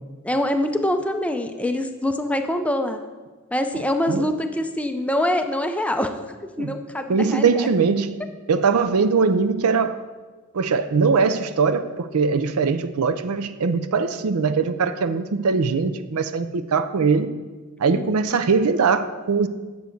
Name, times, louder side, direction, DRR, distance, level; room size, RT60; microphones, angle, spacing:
voice 1, 0.2-3.0 3.5-6.1 6.6-7.7 17.9-18.0, left 1 dB, 5° left, 6 dB, 0.4 m, -24 dB
voice 2, 7.1-10.0 10.5-17.3 17.8-19.5, right 5 dB, 80° right, 11 dB, 0.5 m, -21 dB
9.4 x 6.9 x 4.5 m, 1.3 s
head